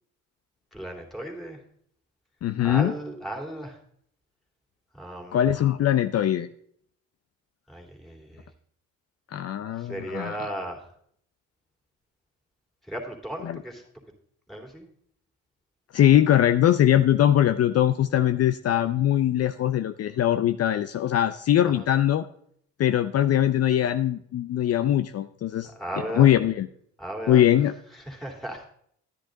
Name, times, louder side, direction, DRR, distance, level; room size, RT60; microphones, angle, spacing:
voice 1, 0.7-1.6 2.6-3.8 5.0-5.4 7.7-8.4 9.8-10.8 12.9-13.8 14.5-14.9 21.7-21.8 25.7-26.3 27.0-27.4 28.1-28.7, right 1 dB, ahead, 1 dB, 2.9 m, -35 dB
voice 2, 2.4-2.9 5.3-6.5 9.3-10.4 13.4-13.6 15.9-22.3 22.8-25.7 26.1-26.7 27.3-27.7, left 11 dB, 55° left, 11 dB, 0.5 m, -21 dB
10.5 x 10.0 x 3.9 m, 0.66 s
cardioid pair, 90°, 30 cm